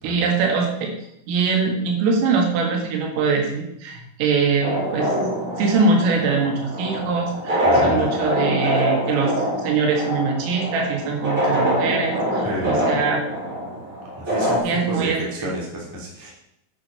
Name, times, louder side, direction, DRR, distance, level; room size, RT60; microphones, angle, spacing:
voice 1, 0.0-0.9 1.3-5.2 5.6-9.3 9.6-13.2 14.6-15.5, right 4 dB, 80° right, 1 dB, 4.6 m, -22 dB
sound 1, 4.6-14.6, equal, 60° right, 0.8 m, -24 dB
voice 2, 7.6-8.1 12.4-12.8 14.2-16.3, equal, 5° right, -4 dB, 1.8 m, -30 dB
10.5 x 7.6 x 5.6 m, 0.80 s
omnidirectional pair, 5.8 m